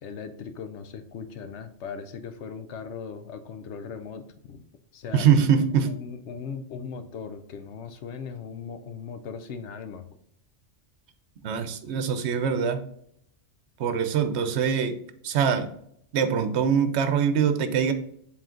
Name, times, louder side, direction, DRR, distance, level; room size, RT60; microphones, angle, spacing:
voice 1, 0.0-4.6 4.9-5.3 5.9-10.0, left 6 dB, 75° left, 9 dB, 1.0 m, -38 dB
voice 2, 5.1-5.9 11.4-12.8 13.8-15.7 16.1-17.9, right 7 dB, 70° right, 9 dB, 0.9 m, -23 dB
7.5 x 3.5 x 3.8 m, 0.70 s
omnidirectional pair, 1.2 m